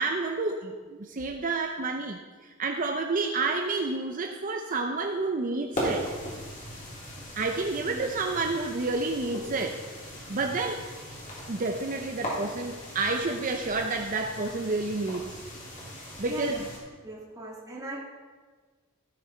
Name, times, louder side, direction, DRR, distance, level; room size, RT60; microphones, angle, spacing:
voice 1, 0.0-6.1 7.4-9.8 10.3-10.8 11.5-15.4 16.2-16.7, right 3 dB, 40° right, 4 dB, 0.6 m, -30 dB
sound 1, 5.7-16.8, equal, 40° left, 3.3 m, -38 dB
voice 2, 16.3-16.6 17.0-18.0, right 1 dB, 15° right, -5 dB, 1.8 m, -39 dB
16.0 x 6.7 x 4.3 m, 1.5 s
head